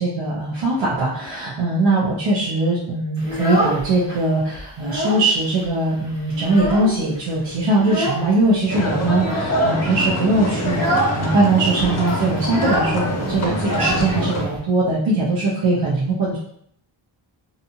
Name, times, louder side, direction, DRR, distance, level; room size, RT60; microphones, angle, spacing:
voice 1, 0.0-10.9 11.2-16.4, right 2 dB, 70° right, -7 dB, 0.8 m, -20 dB
Child speech kid speaking, 3.2-4.2 4.5-5.3 5.6-5.7 6.1-7.2 7.8-8.3 9.2-9.7 10.1-10.3 10.7-11.2 11.5-11.6 11.8-14.6, equal, 10° right, 0.8 m, -25 dB
sound 1, 8.7-14.5, equal, 35° left, 0.5 m, -24 dB
2.7 x 2.4 x 2.7 m, 0.67 s
wide cardioid pair, 175°, 46 cm